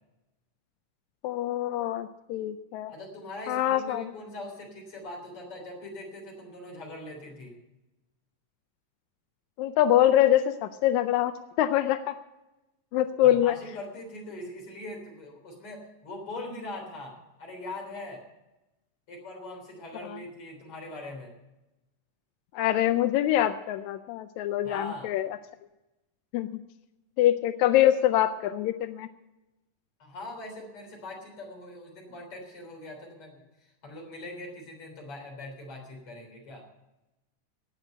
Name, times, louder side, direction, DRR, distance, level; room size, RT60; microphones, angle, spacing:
voice 1, 1.2-2.9 3.5-4.1 9.6-11.3 11.6-12.1 12.9-13.6 20.0-20.2 22.5-25.3 26.3-26.5 27.2-29.1, left 12 dB, 80° left, 10 dB, 1.7 m, -24 dB
voice 2, 2.9-7.6 13.2-18.2 19.1-21.3 24.6-25.1 30.0-36.6, left 2 dB, 45° left, 1 dB, 4.4 m, -41 dB
18.0 x 6.7 x 7.8 m, 1.0 s
omnidirectional pair, 3.7 m